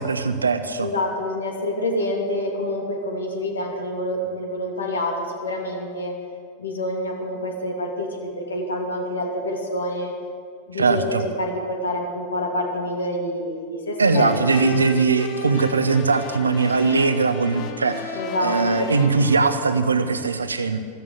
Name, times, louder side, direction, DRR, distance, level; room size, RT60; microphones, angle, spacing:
voice 1, 0.0-0.9 10.7-11.2 14.0-20.8, right 4 dB, 75° right, 9 dB, 1.1 m, -20 dB
voice 2, 0.8-6.1 6.6-10.1 10.7-14.3 14.6-14.8 18.1-18.9, left 1 dB, 70° left, 1 dB, 2.7 m, -27 dB
sound 1, 14.0-19.4, left 3 dB, 40° left, 1.4 m, -35 dB
15.5 x 14.0 x 6.6 m, 2.1 s
figure-of-eight pair, 90°, 0 cm